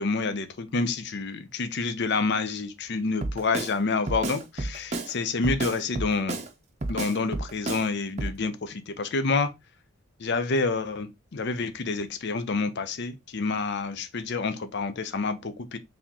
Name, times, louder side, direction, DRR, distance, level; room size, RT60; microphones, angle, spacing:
voice 1, 0.0-6.4 6.9-9.5 10.2-15.8, left 4 dB, 55° left, 0.6 m, -28 dB
Drum kit, 3.2-3.7 4.1-5.1 5.4-6.5 6.8-7.9 8.2-8.4, right 2 dB, 30° right, 0.6 m, -31 dB
4.1 x 3.5 x 2.8 m
head